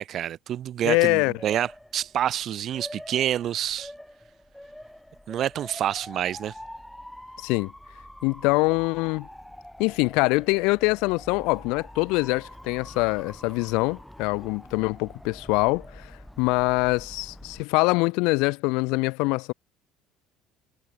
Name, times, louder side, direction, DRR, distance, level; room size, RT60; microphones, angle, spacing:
voice 1, 0.0-3.9 5.3-6.5, right 11 dB, 35° right, 0.9 m, -28 dB
voice 2, 0.8-1.3 7.4-7.7 8.2-9.3 9.8-16.1 16.4-19.5, left 27 dB, 80° left, 0.5 m, -24 dB
Motor vehicle (road) / Siren, 1.4-17.6, left 1 dB, ahead, 1.8 m, -45 dB
cardioid pair, 170°, 0 cm